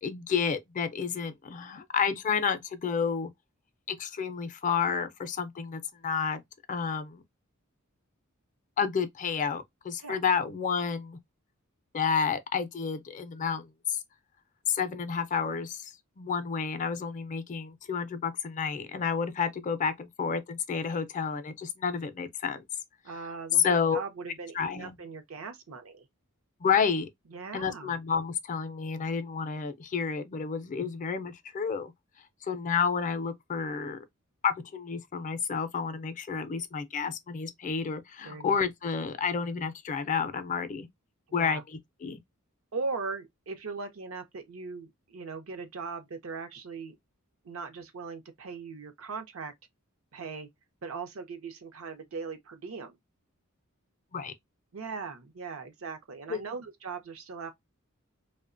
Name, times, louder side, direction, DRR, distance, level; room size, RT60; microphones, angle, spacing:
voice 1, 0.0-3.3 3.9-6.4 6.7-7.2 8.8-11.2 11.9-14.0 14.7-22.6 23.6-24.0 24.6-24.9 26.6-27.1 27.5-31.9 32.5-34.0 34.4-40.9 41.3-42.2 54.1-54.3 56.3-56.4, left 6 dB, 35° left, 0.4 m, -30 dB
voice 2, 23.0-26.0 27.3-28.0 38.2-38.6 41.3-41.6 42.7-47.0 47.4-49.5 50.1-50.5 50.8-53.0 54.7-57.5, right 4 dB, 70° right, 0.6 m, -39 dB
2.8 x 2.1 x 2.4 m
head